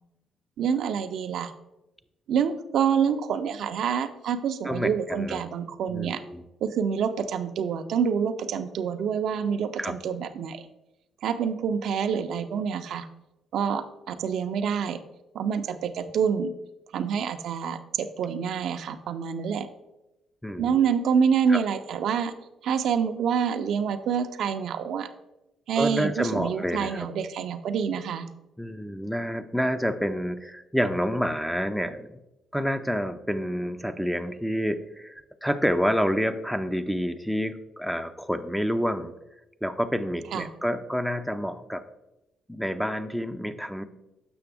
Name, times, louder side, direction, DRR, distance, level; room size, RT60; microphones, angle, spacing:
voice 1, 0.6-1.5 2.3-6.2 6.6-10.6 11.2-13.1 13.5-15.0 15.3-16.5 16.9-19.7 20.6-22.3 22.6-25.1 25.7-28.3 40.3-40.5, right 7 dB, 70° right, 8 dB, 0.5 m, -27 dB
voice 2, 4.7-5.4 5.9-6.4 9.8-9.9 20.4-20.8 21.5-21.6 25.8-27.1 28.6-32.2 32.5-39.1 39.6-41.8 42.5-43.8, equal, ahead, 10 dB, 0.4 m, -28 dB
6.9 x 5.8 x 3.4 m, 0.94 s
cardioid pair, 90°, 0 cm